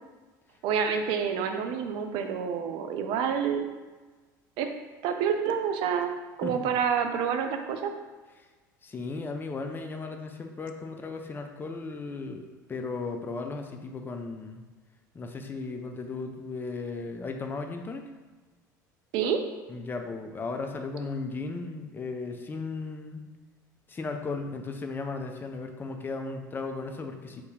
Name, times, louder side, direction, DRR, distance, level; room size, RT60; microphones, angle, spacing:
voice 1, 0.6-3.7 4.6-4.7 5.0-7.9 19.1-19.4, right 7 dB, 55° right, 6 dB, 0.4 m, -28 dB
voice 2, 8.8-14.6 15.1-18.1 19.7-23.2 23.9-27.4, left 3 dB, 20° left, 4 dB, 0.4 m, -36 dB
2.7 x 2.6 x 3.6 m, 1.3 s
figure-of-eight pair, 65°, 10 cm